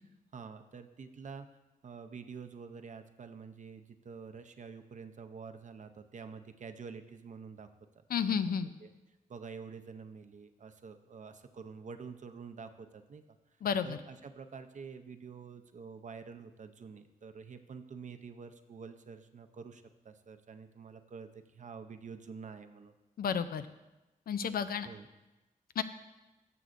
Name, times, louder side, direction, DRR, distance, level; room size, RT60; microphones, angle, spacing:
voice 1, 0.3-1.5 1.8-7.7 8.3-8.4 8.6-8.9 9.3-13.2 13.8-22.9 24.8-25.1, right 5 dB, 55° right, 8 dB, 0.6 m, -48 dB
voice 2, 8.1-8.7 13.6-14.0 23.2-23.6 24.3-24.9 25.8-25.9, left 7 dB, 80° left, 12 dB, 0.4 m, -31 dB
12.5 x 6.8 x 2.6 m, 1.0 s
cardioid pair, 80°, 15 cm